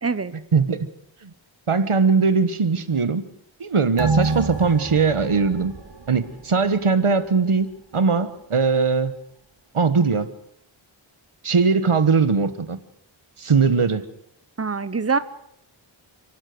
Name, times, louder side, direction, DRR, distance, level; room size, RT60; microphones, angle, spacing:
voice 1, 0.0-0.3 14.6-15.2, right 5 dB, 30° right, 13 dB, 1.1 m, -24 dB
voice 2, 0.5-0.9 1.2-1.3 1.7-3.2 3.6-5.7 6.1-9.1 9.7-10.3 11.4-12.8 13.4-14.1, right 5 dB, 90° right, 12 dB, 1.4 m, -20 dB
sound 1, 4.0-6.9 7.2-7.3, right 3 dB, 55° right, 3.5 m, -27 dB
29.5 x 12.0 x 7.9 m, 0.76 s
wide cardioid pair, 60°, 49 cm